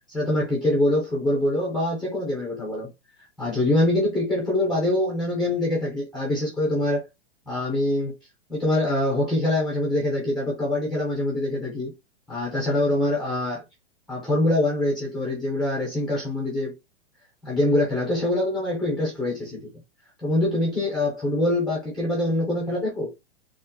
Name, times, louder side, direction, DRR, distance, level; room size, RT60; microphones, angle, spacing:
voice 1, 0.1-2.9 3.4-7.0 7.5-8.2 8.5-11.9 12.3-13.6 14.1-16.8 17.4-19.7 20.2-23.1, left 1 dB, ahead, 0.3 m, -24 dB
3.6 x 2.0 x 2.5 m
hypercardioid pair, 150°, 33 cm